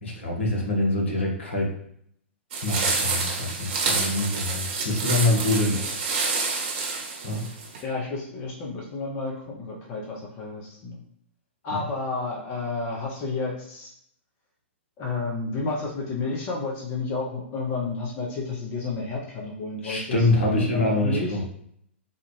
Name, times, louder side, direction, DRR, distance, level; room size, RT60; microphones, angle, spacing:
voice 1, 0.0-1.7 2.6-5.8 6.3-6.4 7.2-7.5 11.7-11.8 19.8-21.4, left 2 dB, 65° left, -2 dB, 1.2 m, -25 dB
sound 1, 2.5-7.8, right 4 dB, 45° right, 1.2 m, -28 dB
voice 2, 7.8-11.0 11.6-13.9 15.0-21.4, left 3 dB, 30° left, -2 dB, 0.8 m, -31 dB
4.0 x 2.4 x 3.2 m, 0.70 s
figure-of-eight pair, 110°, 7 cm